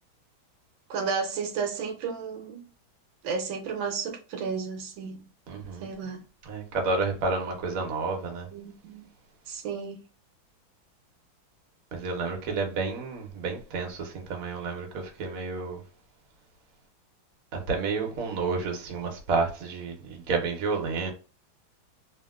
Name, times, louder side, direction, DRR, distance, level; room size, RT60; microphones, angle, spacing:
voice 1, 0.9-2.7 3.2-5.3 5.8-6.2 8.5-9.1 9.5-10.0, right 5 dB, 80° right, 1.3 m, -33 dB
voice 2, 5.5-5.9 6.4-8.5 11.9-15.8 17.5-21.1, right 4 dB, 60° right, 1.0 m, -30 dB
2.9 x 2.8 x 2.3 m
omnidirectional pair, 2.1 m